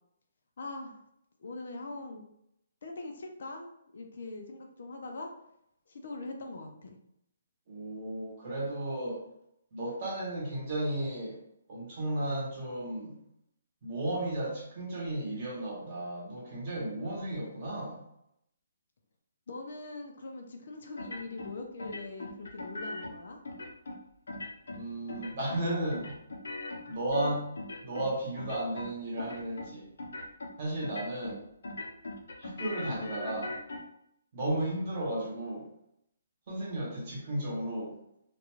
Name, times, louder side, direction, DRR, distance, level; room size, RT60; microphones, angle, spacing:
voice 1, 0.6-1.0 1.4-2.2 2.8-5.3 5.9-7.0 19.5-23.4, left 2 dB, 50° left, 2 dB, 0.4 m, -42 dB
voice 2, 7.7-9.2 9.7-11.4 11.7-13.2 13.8-18.0 24.7-26.1 26.9-27.5 27.8-29.9 30.6-31.4 32.4-33.6 34.3-35.6 36.5-37.9, right 1 dB, 30° right, -4 dB, 0.9 m, -34 dB
sound 1, 21.0-21.5 21.8-23.1 23.5-24.0 24.3-24.8 25.1-25.6 25.9-28.1 28.4-28.9 29.2-29.7 30.0-30.5 30.8-31.4 31.6-33.8, left 2 dB, 85° left, 0.7 m, -39 dB
2.4 x 2.2 x 3.0 m, 0.78 s
hypercardioid pair, 175°, 0 cm